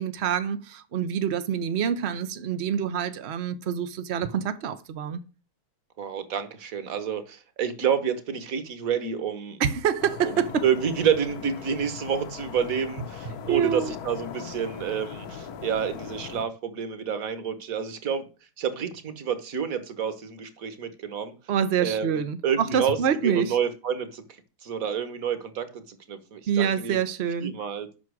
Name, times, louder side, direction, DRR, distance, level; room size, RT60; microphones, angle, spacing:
voice 1, 0.0-5.2 9.6-10.6 13.5-13.9 21.5-23.6 26.5-27.5, right 8 dB, 75° right, 0.6 m, -26 dB
voice 2, 6.0-9.6 10.6-18.2 18.6-21.3 21.8-22.1 22.4-23.0 23.2-24.2 24.6-25.8 26.1-27.0 27.4-27.9, right 7 dB, 50° right, 1.4 m, -28 dB
sound 1, 10.0-16.4, left 7 dB, 60° left, 1.1 m, -40 dB
8.2 x 5.9 x 6.2 m
omnidirectional pair, 2.3 m